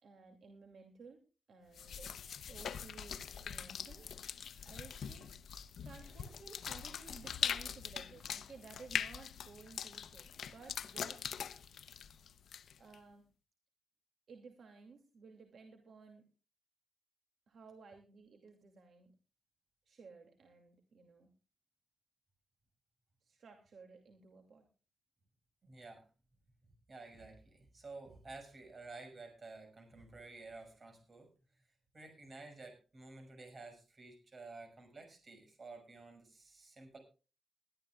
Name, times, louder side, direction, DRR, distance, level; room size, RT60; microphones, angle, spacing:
voice 1, 0.0-1.2 1.5-4.2 4.6-5.3 5.8-11.2 12.8-13.2 14.3-16.2 17.5-19.1 19.9-21.3 23.2-24.7, right 4 dB, 60° right, 3 dB, 2.5 m, -56 dB
sound 1, 1.7-12.9, left 8 dB, 80° left, 0.8 m, -42 dB
voice 2, 25.6-26.0 26.9-31.3 31.9-37.0, right 3 dB, 35° right, 5 dB, 6.0 m, -52 dB
21.5 x 12.5 x 2.4 m, 0.34 s
wide cardioid pair, 175°, 0 cm